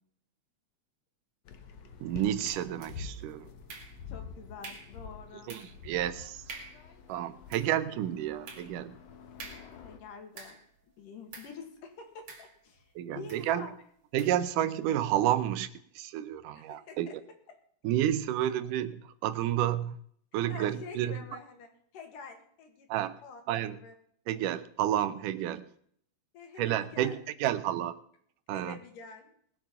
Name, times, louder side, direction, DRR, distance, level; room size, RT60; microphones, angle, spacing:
sound 1, 1.4-10.0, left 5 dB, 60° left, 2.2 m, -47 dB
voice 1, 2.0-3.5 5.5-6.4 7.1-9.0 13.0-13.7 14.1-15.7 16.0-17.2 17.8-20.0 20.3-21.2 22.9-23.2 23.5-23.8 24.3-25.7 26.6-28.0 28.5-28.8, right 12 dB, 85° right, 13 dB, 2.4 m, -30 dB
sound 2, 2.8-3.2 3.7-4.2 4.6-5.0 5.5-5.8 6.1-6.2 6.5-6.9 7.3-10.8 11.3-11.6 12.3-12.9 13.3-13.5 14.2-14.5, right 4 dB, 40° right, 2.6 m, -48 dB
voice 2, 4.1-5.6 9.7-10.6 11.0-13.7 16.5-17.1 17.5-17.6 20.5-22.9 23.2-23.9 26.3-27.2 28.5-29.3, left 5 dB, 90° left, 5 dB, 3.7 m, -47 dB
20.0 x 7.8 x 5.6 m, 0.64 s
omnidirectional pair, 3.7 m